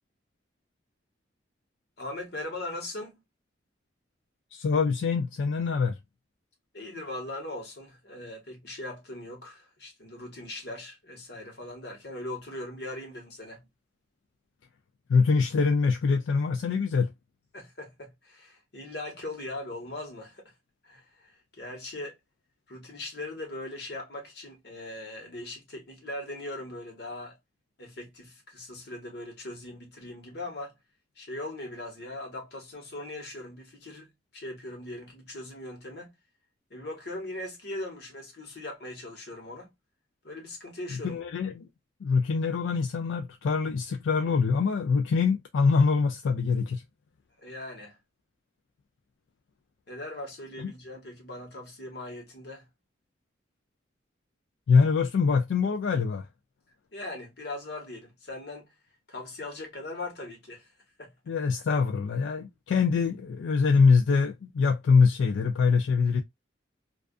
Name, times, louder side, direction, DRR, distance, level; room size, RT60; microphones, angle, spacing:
voice 1, 2.0-3.2 6.7-13.7 17.5-20.5 20.8-22.2 22.7-27.4 27.8-30.7 31.2-36.1 36.7-39.7 40.2-41.2 47.4-48.0 49.9-52.7 56.9-58.7 59.1-60.7 61.0-61.1, left 1 dB, 60° left, 1.2 m, -40 dB
voice 2, 4.5-6.0 15.1-17.1 41.0-41.7 42.0-46.8 50.6-50.7 54.7-56.3 61.3-66.2, left 5 dB, 85° left, 0.3 m, -24 dB
2.4 x 2.3 x 2.3 m
head